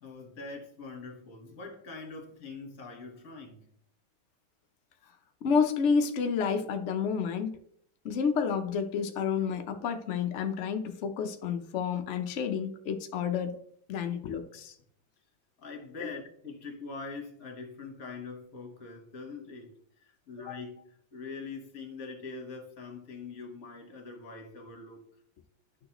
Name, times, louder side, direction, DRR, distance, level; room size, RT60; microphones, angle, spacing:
voice 1, 0.0-3.7 15.6-25.0, left 4 dB, 45° left, 1.7 m, -43 dB
voice 2, 5.4-7.6 8.0-13.6 13.9-14.7, left 6 dB, 85° left, 0.6 m, -30 dB
11.0 x 6.3 x 3.0 m
omnidirectional pair, 2.3 m